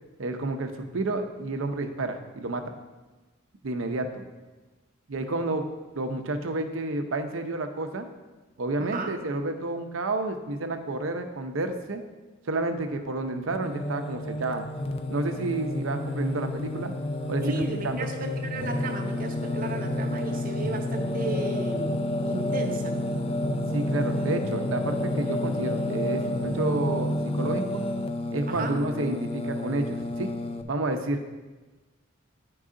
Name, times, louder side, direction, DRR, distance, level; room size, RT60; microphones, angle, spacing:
voice 1, 0.2-2.7 3.6-4.2 5.1-5.7 6.0-8.1 8.6-12.0 12.5-14.7 15.1-16.9 17.3-17.4 17.8-18.1 23.7-27.8 28.3-30.3 30.7-31.2, right 2 dB, 90° right, 7 dB, 0.7 m, -30 dB
voice 2, 8.8-9.1 17.4-23.0 28.5-28.7, right 2 dB, 45° right, 3 dB, 0.6 m, -34 dB
Singing, 13.5-30.6, left 1 dB, 30° left, 0.3 m, -30 dB
9.8 x 4.7 x 3.7 m, 1.2 s
head